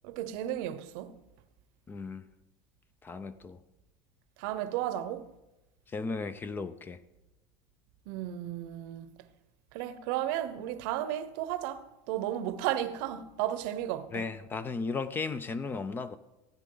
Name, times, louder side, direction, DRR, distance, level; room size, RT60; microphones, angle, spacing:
voice 1, 0.0-1.1 4.4-5.3 8.1-9.2 9.7-14.2, right 12 dB, 75° right, 0.8 m, -34 dB
voice 2, 1.9-2.2 3.0-3.6 5.9-7.0 14.1-16.2, left 4 dB, 20° left, 0.5 m, -35 dB
15.5 x 9.4 x 3.9 m
cardioid pair, 145°, 11 cm